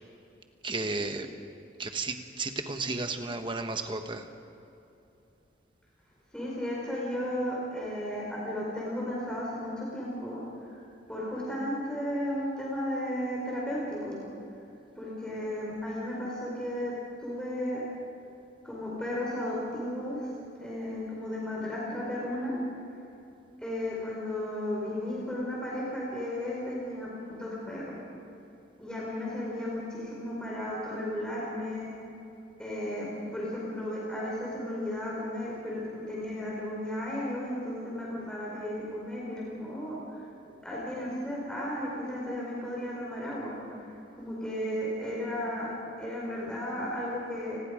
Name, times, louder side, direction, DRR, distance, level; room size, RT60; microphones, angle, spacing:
voice 1, 0.6-1.3 1.8-4.3, right 3 dB, 25° right, 6 dB, 1.4 m, -33 dB
voice 2, 6.3-10.4 10.7-10.8 11.1-14.2 15.0-16.9 17.2-17.8 18.6-20.3 20.6-22.6 23.6-28.0 28.8-31.9 32.6-40.2 40.6-43.8 44.2-45.7 46.0-47.6, left 1 dB, 5° left, -5 dB, 4.7 m, -34 dB
29.5 x 20.5 x 5.1 m, 2.8 s
head